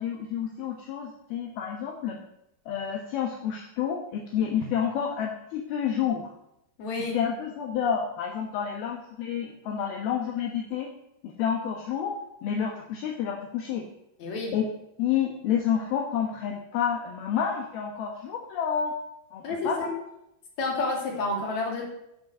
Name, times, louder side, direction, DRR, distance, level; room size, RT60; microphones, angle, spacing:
voice 1, 0.0-2.2 2.7-6.3 7.1-10.9 11.2-12.2 12.4-13.8 14.5-14.6 15.0-18.9 19.3-19.9, left 8 dB, 70° left, 0 dB, 3.0 m, -29 dB
voice 2, 6.8-7.2 14.2-14.5 19.4-20.0 20.6-21.8, left 2 dB, 45° left, -1 dB, 3.8 m, -29 dB
16.0 x 6.2 x 6.3 m, 0.81 s
omnidirectional pair, 4.8 m